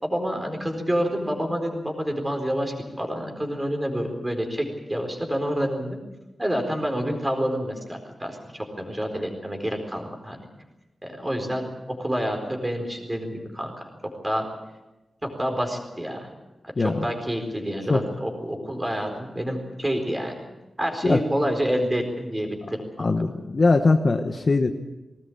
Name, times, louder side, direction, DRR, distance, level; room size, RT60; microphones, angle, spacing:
voice 1, 0.0-6.0 6.4-10.4 11.0-11.7 12.0-13.9 14.2-14.4 15.2-16.3 16.8-20.4 20.8-22.8, equal, 10° right, 4 dB, 4.3 m, -28 dB
voice 2, 16.8-17.1 17.9-18.0 21.0-21.2 23.0-24.7, left 3 dB, 35° left, 5 dB, 1.1 m, -21 dB
20.5 x 19.0 x 8.6 m, 1.0 s
wide cardioid pair, 180°, 0 cm